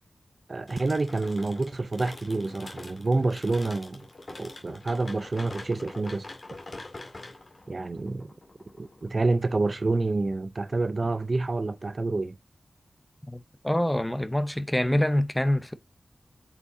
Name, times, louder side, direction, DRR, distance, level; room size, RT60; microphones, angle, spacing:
voice 1, 0.5-4.0 4.4-6.3 7.7-8.3 8.8-12.4, right 3 dB, 40° right, 0.5 m, -28 dB
sound 1, 0.7-9.4, left 2 dB, 40° left, 1.8 m, -44 dB
voice 2, 13.3-15.7, left 1 dB, 10° left, 0.7 m, -26 dB
8.2 x 5.1 x 2.6 m
wide cardioid pair, 105°, 0 cm